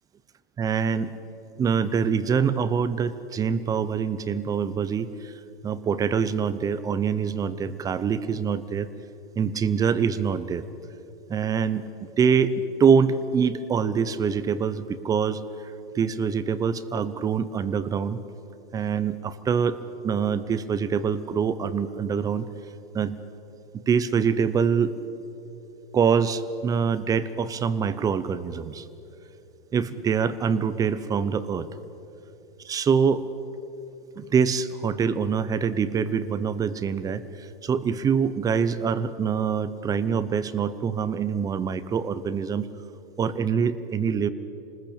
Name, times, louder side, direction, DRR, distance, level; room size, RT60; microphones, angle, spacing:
voice 1, 0.6-1.1 1.6-5.3 5.6-8.9 9.4-10.6 11.3-11.9 12.2-15.4 15.9-18.2 18.7-19.8 20.0-22.5 22.9-23.2 23.9-24.9 25.9-28.8 29.7-31.7 32.6-33.2 34.1-42.7 43.2-44.3, right 6 dB, 10° right, 14 dB, 0.7 m, -24 dB
27.0 x 20.0 x 8.6 m, 2.9 s
hypercardioid pair, 150°, 29 cm